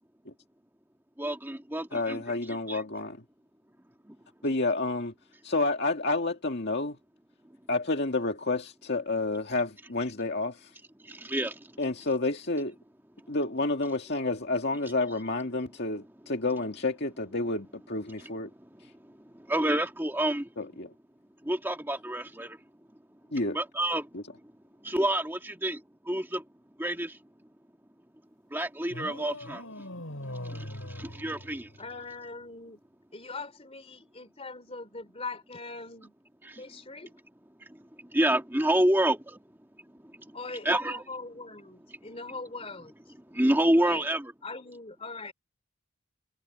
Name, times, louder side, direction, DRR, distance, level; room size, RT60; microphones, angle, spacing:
voice 1, 1.2-2.2 2.5-2.8 4.1-4.2 11.0-11.8 18.2-18.3 18.6-20.5 21.4-22.6 23.5-24.1 24.4-24.5 24.8-26.5 26.8-27.2 28.5-29.9 30.3-31.7 36.4-36.6 37.6-39.2 40.0-40.4 40.7-41.0 43.3-44.3, right 1 dB, 10° right, 1.8 m, -29 dB
voice 2, 1.9-3.2 4.4-5.1 5.4-7.0 7.7-10.7 11.8-12.7 13.3-18.5 20.6-20.9 23.3-23.6 24.1-24.2, left 2 dB, 50° left, 2.1 m, -30 dB
sound 1, 28.9-32.0, left 1 dB, 65° left, 5.8 m, -41 dB
voice 3, 31.8-32.8 33.1-36.1 36.6-37.1 40.3-42.9 43.7-44.0 44.4-45.3, left 3 dB, 25° left, 3.2 m, -41 dB
head